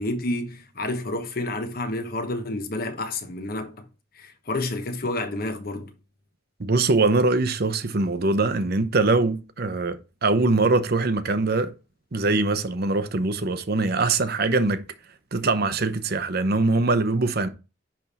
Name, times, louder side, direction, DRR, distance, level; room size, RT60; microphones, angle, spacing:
voice 1, 0.0-3.8 4.1-5.9, left 2 dB, 50° left, 1.0 m, -29 dB
voice 2, 6.6-11.7 12.1-14.8 15.3-17.5, right 3 dB, 55° right, 0.8 m, -22 dB
10.5 x 3.5 x 4.1 m
head